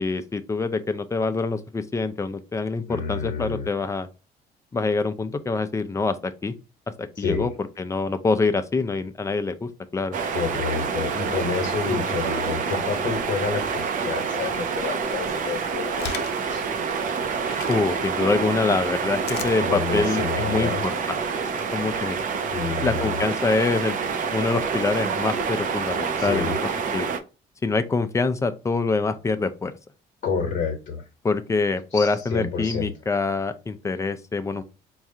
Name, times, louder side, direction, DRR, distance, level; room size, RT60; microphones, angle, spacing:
voice 1, 0.0-4.1 4.7-6.2 6.4-6.5 7.2-10.2 11.9-12.2 17.7-21.2 21.5-22.2 22.8-23.9 24.3-26.5 26.9-27.1 27.6-29.7 31.2-34.6, left 3 dB, 20° left, 9 dB, 0.4 m, -25 dB
voice 2, 2.9-3.7 7.2-7.5 10.3-16.6 19.6-20.9 22.5-23.2 26.2-26.6 30.2-31.0 31.9-32.9, left 5 dB, 55° left, 1 dB, 1.0 m, -29 dB
sound 1, 10.1-27.2, right 5 dB, 50° right, 0.6 m, -27 dB
sound 2, 12.4-13.3 13.9-14.5 15.0-17.8 18.4-19.6, left 8 dB, 75° left, 0.6 m, -38 dB
4.6 x 2.4 x 2.7 m, 0.31 s
cardioid pair, 110°, 17 cm